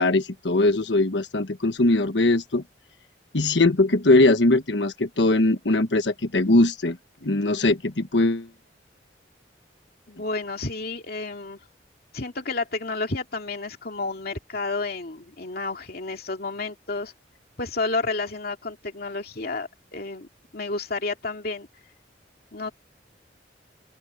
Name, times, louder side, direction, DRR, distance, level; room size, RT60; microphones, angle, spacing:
voice 1, 0.0-2.6 3.3-7.0 7.2-8.5, left 2 dB, 80° left, 1.3 m, -21 dB
voice 2, 10.1-11.6 12.1-17.1 17.6-21.7 22.5-22.7, left 3 dB, 60° left, 2.5 m, -31 dB
open air
head